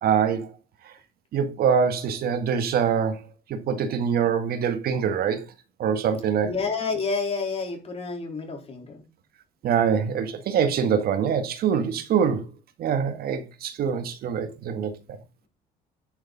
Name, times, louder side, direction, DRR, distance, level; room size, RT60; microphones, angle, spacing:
voice 1, 0.0-0.5 1.3-3.2 3.5-5.4 5.8-6.5 9.6-12.5 12.8-14.9, right 7 dB, 65° right, 1.7 m, -24 dB
voice 2, 6.4-9.0, left 4 dB, 35° left, 3.8 m, -29 dB
10.5 x 6.6 x 4.0 m
cardioid pair, 110°, 17 cm